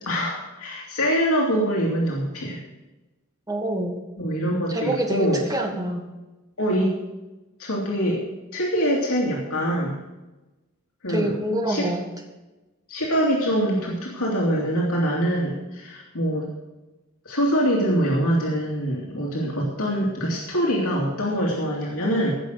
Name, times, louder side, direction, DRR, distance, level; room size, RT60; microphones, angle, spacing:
voice 1, 0.0-2.6 4.2-5.4 6.6-6.9 7.6-8.2 8.5-10.0 11.0-11.3 11.7-11.9 12.9-16.5 17.2-22.3, equal, 75° left, -4 dB, 2.7 m, -24 dB
voice 2, 3.5-4.0 4.7-6.0 11.1-12.0, right 1 dB, 15° right, 2 dB, 1.8 m, -26 dB
17.0 x 6.5 x 6.5 m, 1.1 s
head